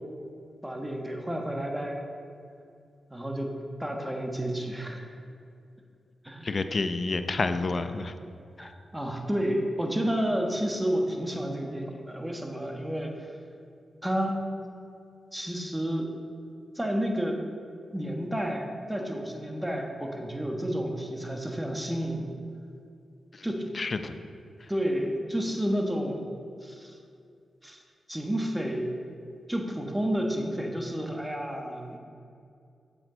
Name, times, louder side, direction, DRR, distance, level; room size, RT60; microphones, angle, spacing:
voice 1, 0.6-2.0 3.1-3.5 3.8-5.1 6.2-6.5 8.6-13.1 14.0-14.4 15.3-16.1 16.7-17.4 17.9-22.3 23.4-23.7 24.7-26.3 26.6-27.0 27.6-27.8 28.1-28.9 29.5-32.0, equal, 10° right, 2 dB, 1.4 m, -30 dB
voice 2, 6.4-8.1 8.6-8.7 23.4-23.5 23.7-24.1, left 3 dB, 50° left, 9 dB, 0.6 m, -29 dB
8.1 x 7.7 x 4.0 m, 2.5 s
supercardioid pair, 40°, 0 cm